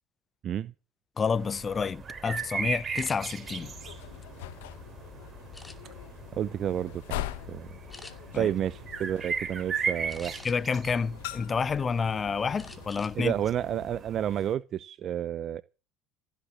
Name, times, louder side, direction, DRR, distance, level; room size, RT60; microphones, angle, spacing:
voice 1, 1.2-3.7 8.3-8.5 10.4-13.3, left 5 dB, 30° left, 0.7 m, -29 dB
sound 1, 1.2-14.5, right 5 dB, 30° right, 3.9 m, -38 dB
sound 2, 2.9-3.2 3.8-4.8 5.5-6.1 6.6-6.9 7.2-7.4 7.9-8.1 10.1-10.8 11.3-12.0 12.6-13.2 13.5-13.7 14.1-14.5, left 2 dB, 10° left, 2.5 m, -49 dB
sound 3, 3.4-14.0, left 16 dB, 80° left, 1.2 m, -43 dB
voice 2, 6.3-7.7 8.3-10.4 13.1-15.6, right 10 dB, 50° right, 0.7 m, -31 dB
16.0 x 7.7 x 8.5 m
hypercardioid pair, 80°, 0 cm